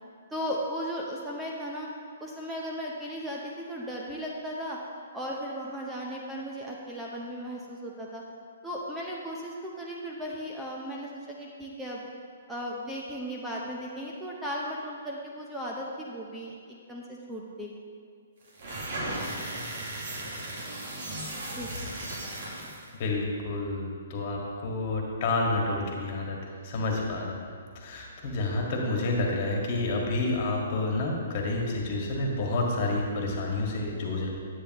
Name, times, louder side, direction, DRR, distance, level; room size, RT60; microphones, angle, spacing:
voice 1, 0.3-1.9 2.2-4.8 5.1-8.2 8.6-12.0 12.5-17.7 21.5-21.7, equal, 5° right, -4 dB, 0.7 m, -36 dB
sound 1, 18.5-22.9, right 1 dB, 55° right, 2.1 m, -36 dB
voice 2, 22.9-27.4 27.7-34.3, left 2 dB, 45° left, -1 dB, 1.7 m, -29 dB
9.9 x 8.5 x 3.0 m, 2.2 s
hypercardioid pair, 145°, 0 cm